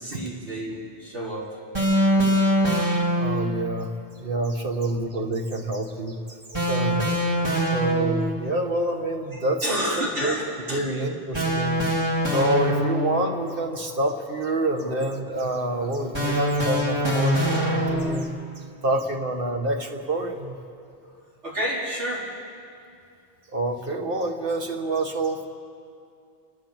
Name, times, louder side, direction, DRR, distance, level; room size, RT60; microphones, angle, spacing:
voice 1, 0.0-1.6 4.5-4.7 9.6-11.1 13.3-13.4 14.7-14.9 15.4-15.5 18.0-18.1 21.0-22.4, equal, 85° right, -6 dB, 4.8 m, -31 dB
sound 1, 1.7-3.6 6.5-8.4 11.3-13.3 16.1-18.3, equal, 25° right, 2.8 m, -23 dB
voice 2, 2.8-3.9 4.2-7.0 7.7-10.4 10.7-11.8 12.3-18.3 18.8-20.6 23.5-25.5, right 2 dB, 55° right, 3 dB, 1.8 m, -27 dB
29.0 x 12.5 x 7.4 m, 2.4 s
omnidirectional pair, 1.1 m